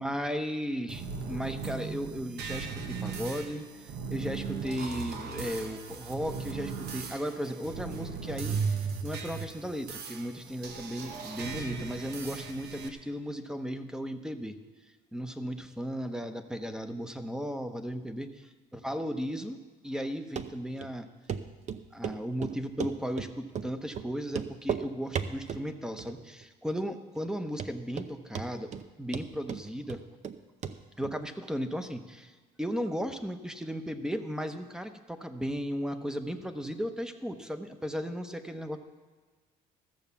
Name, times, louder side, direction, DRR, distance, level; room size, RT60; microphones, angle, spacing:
voice 1, 0.0-8.6 9.0-14.6 15.1-18.5 18.8-21.1 21.9-28.7 29.0-30.0 31.0-32.3 32.6-38.8, equal, 5° right, 8 dB, 1.0 m, -35 dB
sound 1, 0.9-12.9, right 5 dB, 75° right, 1.3 m, -37 dB
Run, 20.4-20.5 20.8-20.9 21.3-21.4 21.7-22.2 22.4-23.3 23.5-23.7 23.9-24.1 24.3-24.8 25.1-25.6 26.0-26.4 26.7-26.8 27.2-27.3 27.6-28.1 28.3-28.8 29.1-30.4 30.6-30.7 31.0-31.1, right 8 dB, 45° right, 0.7 m, -34 dB
14.0 x 7.2 x 7.0 m, 1.4 s
cardioid pair, 110°, 17 cm